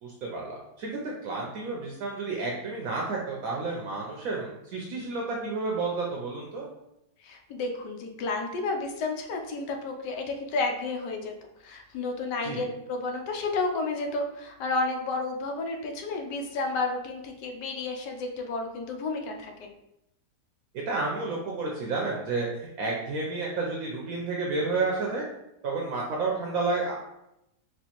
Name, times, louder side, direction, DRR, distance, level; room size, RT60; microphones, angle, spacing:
voice 1, 0.0-6.7 12.4-12.6 20.9-25.3 25.6-27.0, right 3 dB, 70° right, -2 dB, 0.9 m, -31 dB
voice 2, 7.2-11.3 11.6-19.7, left 3 dB, 90° left, 3 dB, 1.2 m, -31 dB
4.4 x 2.5 x 2.8 m, 0.85 s
omnidirectional pair, 1.8 m